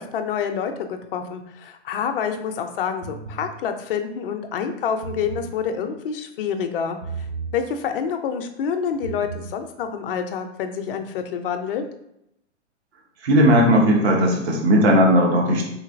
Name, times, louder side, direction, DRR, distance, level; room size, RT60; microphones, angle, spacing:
voice 1, 0.0-7.0 7.5-11.8, left 7 dB, 50° left, 6 dB, 0.4 m, -27 dB
sound 1, 3.0-3.5 4.9-5.5 7.0-7.6 8.9-9.5, right 6 dB, 25° right, 0.4 m, -34 dB
voice 2, 13.2-15.7, equal, 60° right, 0 dB, 0.9 m, -17 dB
3.2 x 2.7 x 2.5 m, 0.79 s
figure-of-eight pair, 115°, 36 cm